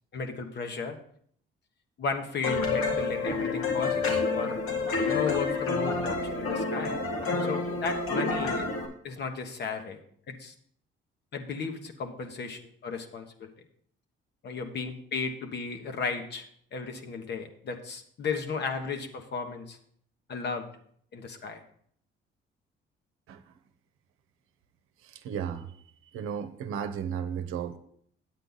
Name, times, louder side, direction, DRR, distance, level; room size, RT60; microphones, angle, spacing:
voice 1, 0.1-1.0 2.0-4.6 5.1-7.0 7.4-8.7 9.0-10.0 10.3-10.5 11.3-13.5 14.4-19.8 20.3-20.7 21.1-21.6, left 5 dB, 55° left, 5 dB, 1.3 m, -35 dB
sound 1, 2.4-8.9, left 3 dB, 85° left, 2.0 m, -28 dB
voice 2, 25.0-25.7 26.1-27.8, right 8 dB, 80° right, 9 dB, 0.9 m, -34 dB
8.9 x 8.2 x 4.0 m, 0.63 s
cardioid pair, 105°, 21 cm